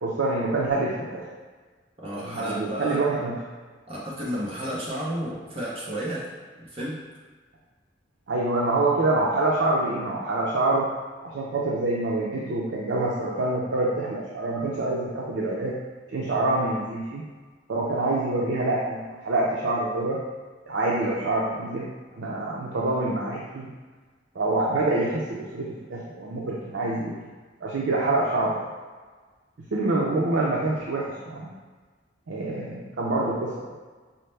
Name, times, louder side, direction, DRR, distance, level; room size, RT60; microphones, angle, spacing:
voice 1, 0.0-1.2 2.2-3.4 8.3-10.9 11.2-15.7 16.1-17.2 17.7-20.2 20.7-21.9 22.1-23.7 24.3-27.1 27.6-28.5 29.7-31.5 32.3-33.5, right 2 dB, 85° right, -4 dB, 0.5 m, -26 dB
voice 2, 2.0-3.1 3.9-6.3 6.7-7.0, equal, 30° right, -6 dB, 0.7 m, -32 dB
5.5 x 2.1 x 3.2 m, 1.4 s
head